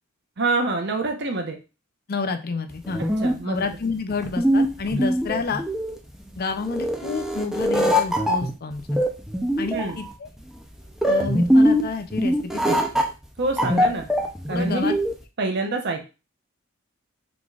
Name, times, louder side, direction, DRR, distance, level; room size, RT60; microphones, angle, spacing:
voice 1, 0.4-1.6 3.2-3.6 9.7-10.0 13.4-14.1 14.5-14.9 15.4-16.0, right 3 dB, 55° right, 4 dB, 0.9 m, -26 dB
voice 2, 2.1-3.0 3.4-5.6 6.4-9.0 9.6-10.3 11.1-13.0 13.8-13.9 14.5-14.9, left 4 dB, 50° left, 7 dB, 0.5 m, -30 dB
sound 1, 2.7-15.2, equal, ahead, 0.6 m, -22 dB
4.8 x 3.9 x 2.4 m, 0.30 s
head